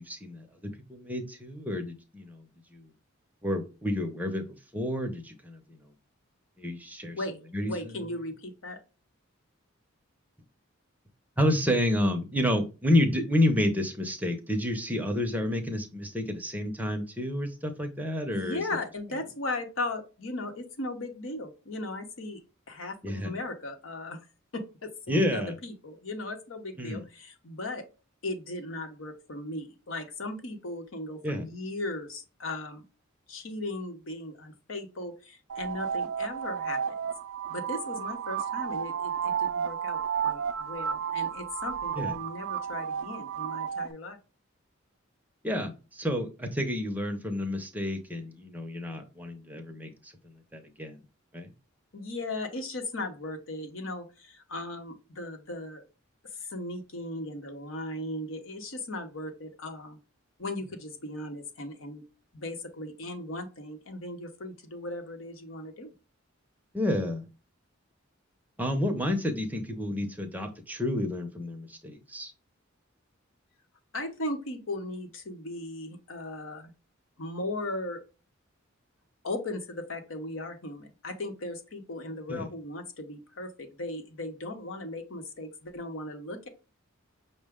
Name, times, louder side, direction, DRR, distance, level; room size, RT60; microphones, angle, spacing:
voice 1, 0.0-2.4 2.7-2.9 3.4-5.8 6.6-7.2 7.5-8.1 11.4-18.6 23.0-23.4 25.1-25.5 26.8-27.0 31.2-31.5 42.0-42.2 45.4-51.0 51.3-51.5 66.7-67.2 68.6-72.3 82.3-82.5, left 1 dB, 10° right, 4 dB, 0.6 m, -30 dB
voice 2, 7.6-8.8 18.3-22.4 22.7-24.2 24.5-27.8 28.2-32.8 33.3-37.0 37.5-44.2 51.9-55.8 56.4-60.0 60.4-62.0 62.3-65.9 73.9-76.7 77.2-78.0 79.2-86.5, left 2 dB, 70° left, 6 dB, 0.9 m, -37 dB
sound 1, 35.5-43.9, right 8 dB, 70° right, 0.4 m, -32 dB
5.7 x 2.1 x 3.5 m, 0.32 s
head